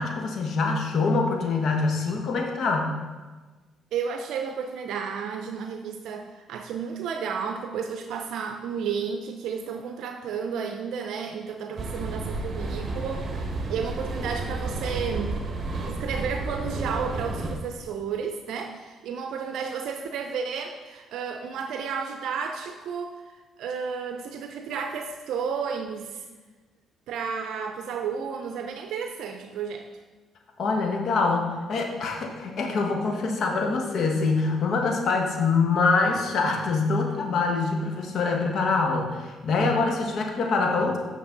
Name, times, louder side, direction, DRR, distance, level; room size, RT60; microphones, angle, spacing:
voice 1, 0.0-2.9 30.6-41.0, left 4 dB, 60° left, 2 dB, 1.3 m, -25 dB
voice 2, 3.9-13.2 13.7-15.4 15.9-26.2 27.1-29.9, right 6 dB, 75° right, 5 dB, 0.5 m, -32 dB
sound 1, 11.8-17.6, right 2 dB, 40° right, 1.4 m, -31 dB
8.4 x 6.1 x 3.9 m, 1.3 s
cardioid pair, 85°, 0 cm